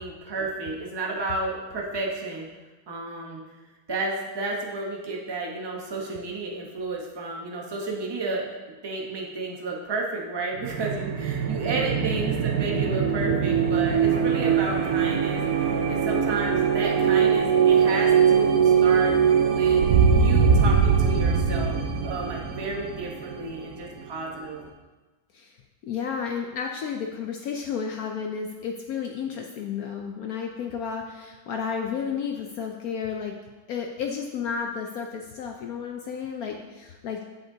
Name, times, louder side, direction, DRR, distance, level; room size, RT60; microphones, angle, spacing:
voice 1, 0.0-2.5 2.9-3.4 3.9-8.5 8.8-19.1 19.5-24.6, right 3 dB, 25° right, -1 dB, 0.5 m, -32 dB
sound 1, 10.6-24.1, right 6 dB, 65° right, 1.0 m, -22 dB
voice 2, 25.8-33.3 33.7-37.2, left 6 dB, 75° left, 2 dB, 0.8 m, -32 dB
8.1 x 7.9 x 2.7 m, 1.2 s
omnidirectional pair, 2.1 m